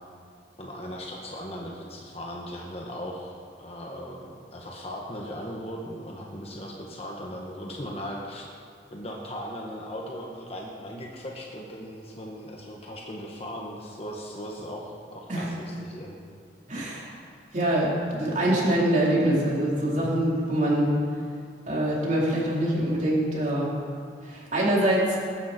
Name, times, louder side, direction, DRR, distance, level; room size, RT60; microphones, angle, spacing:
voice 1, 0.6-8.4 8.9-16.2, equal, 35° left, -2 dB, 1.6 m, -38 dB
voice 2, 16.7-17.1 17.5-20.9 21.7-23.7 24.2-25.2, right 1 dB, 40° right, -5 dB, 4.2 m, -24 dB
21.0 x 12.0 x 4.5 m, 2.3 s
head